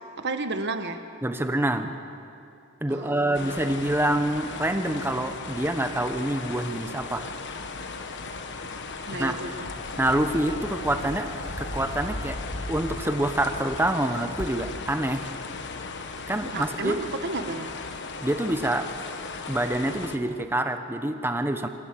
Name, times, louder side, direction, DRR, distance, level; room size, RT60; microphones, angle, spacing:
voice 1, 0.2-1.0 2.9-3.7 9.1-9.7 16.5-17.7, right 3 dB, 50° right, 7 dB, 1.3 m, -32 dB
voice 2, 1.2-1.9 2.8-7.3 9.2-9.4 10.0-11.3 11.6-12.4 12.7-15.3 16.3-17.0 18.2-18.9 19.5-21.7, right 1 dB, 10° right, 8 dB, 1.0 m, -26 dB
sound 1, 3.3-20.2, left 4 dB, 55° left, 1.3 m, -37 dB
sound 2, 9.6-13.8 14.4-14.5, left 1 dB, 80° left, 2.1 m, -37 dB
25.0 x 15.5 x 7.6 m, 2.6 s
head